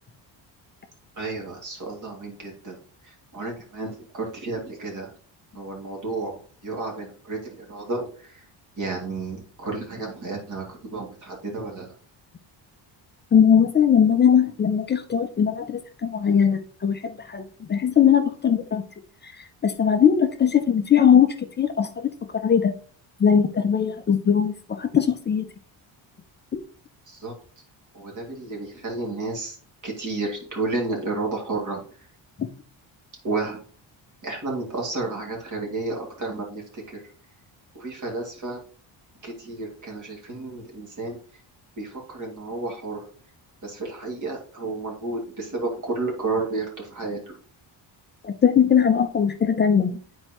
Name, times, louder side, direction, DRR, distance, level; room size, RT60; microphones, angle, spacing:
voice 1, 1.2-2.7 3.0-5.1 5.5-6.4 6.6-8.4 8.8-11.9 27.1-27.3 27.9-29.6 29.8-31.8 33.2-33.6 34.2-37.0 37.7-38.6 39.2-41.2 41.8-43.0 43.6-47.4, right 3 dB, 40° right, 0 dB, 2.2 m, -31 dB
voice 2, 13.3-18.8 19.2-19.3 19.6-22.7 23.2-25.5 26.5-26.6 32.4-32.5 48.2-50.0, left 8 dB, 25° left, 7 dB, 0.3 m, -20 dB
9.8 x 4.3 x 2.9 m, 0.42 s
cardioid pair, 180°, 46 cm